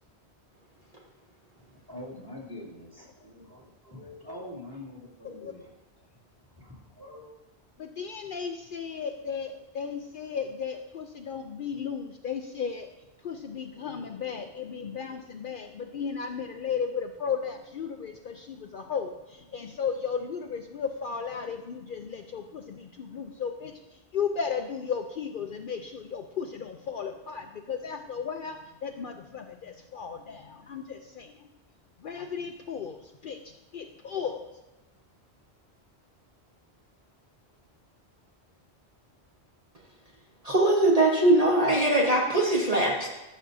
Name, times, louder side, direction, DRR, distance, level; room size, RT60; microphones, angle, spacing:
voice 1, 1.6-5.7 6.5-7.3, left 1 dB, 20° right, -4 dB, 2.4 m, -45 dB
voice 2, 7.8-12.9 13.2-31.5 32.0-34.5, left 6 dB, 60° left, 5 dB, 0.7 m, -35 dB
voice 3, 40.4-43.1, right 1 dB, 35° right, -3 dB, 1.2 m, -22 dB
13.5 x 6.3 x 2.7 m, 1.1 s
omnidirectional pair, 1.1 m